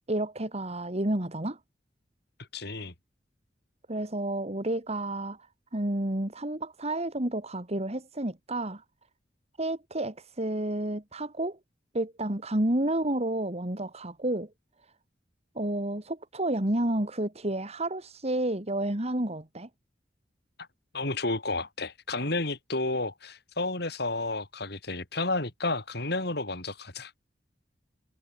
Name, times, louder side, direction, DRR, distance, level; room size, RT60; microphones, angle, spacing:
voice 1, 0.1-1.6 3.9-5.4 5.7-8.8 9.6-11.6 11.9-14.5 15.6-19.7, right 1 dB, 35° right, 2.6 m, -30 dB
voice 2, 2.5-2.9 20.9-27.1, left 2 dB, 65° left, 6.0 m, -31 dB
head